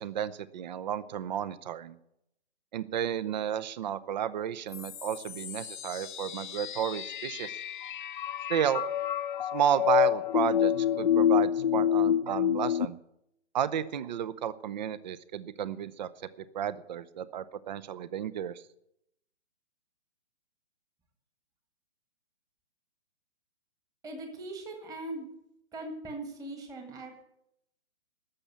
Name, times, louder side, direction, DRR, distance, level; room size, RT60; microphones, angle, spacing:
voice 1, 0.0-2.0 2.7-7.6 8.5-9.0 9.5-13.0 13.5-16.1 16.4-18.6, right 9 dB, 40° right, 17 dB, 0.7 m, -32 dB
sound 1, 4.7-12.9, left 10 dB, 45° left, 0.4 m, -28 dB
voice 2, 24.0-25.3 25.7-27.2, right 2 dB, 10° right, 4 dB, 1.6 m, -40 dB
13.0 x 7.2 x 9.8 m, 0.80 s
figure-of-eight pair, 130°, 34 cm